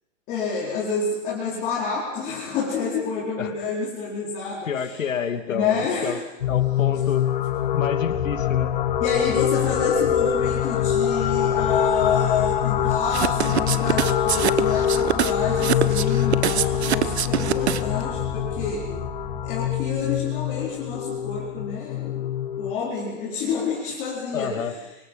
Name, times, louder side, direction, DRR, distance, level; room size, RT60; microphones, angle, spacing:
voice 1, 0.3-5.0 5.5-6.2 9.0-18.9 19.4-22.2 22.6-24.7, left 5 dB, 20° left, -6 dB, 4.7 m, -28 dB
voice 2, 4.6-6.2 6.5-7.3 7.7-8.7 24.3-24.8, left 7 dB, 80° left, 7 dB, 2.8 m, -29 dB
sound 1, 6.4-22.8, left 10 dB, 40° left, 1.1 m, -24 dB
sound 2, 8.1-21.0, right 1 dB, ahead, 3.4 m, -36 dB
sound 3, 13.1-18.0, right 9 dB, 55° right, 1.2 m, -24 dB
29.5 x 25.5 x 5.6 m, 0.97 s
hypercardioid pair, 170°, 38 cm